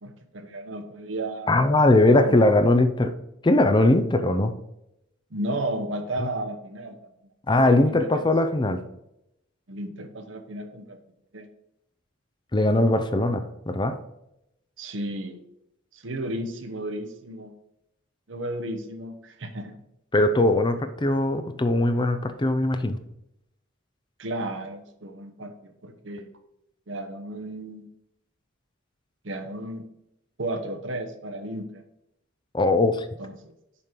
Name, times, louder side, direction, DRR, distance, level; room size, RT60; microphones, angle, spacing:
voice 1, 0.0-1.5 2.1-2.3 5.3-7.0 7.6-8.2 9.7-11.0 11.3-11.5 14.8-15.4 15.9-17.5 18.3-19.7 24.2-26.3 26.9-27.8 29.2-29.8 30.4-31.8 33.2-33.5, right 1 dB, 70° right, 6 dB, 1.0 m, -33 dB
voice 2, 1.5-3.1 3.4-4.5 6.2-6.3 7.5-8.8 12.5-14.0 20.1-23.0 32.5-33.0, left 2 dB, 25° left, 9 dB, 0.6 m, -20 dB
7.1 x 5.1 x 4.5 m, 0.83 s
head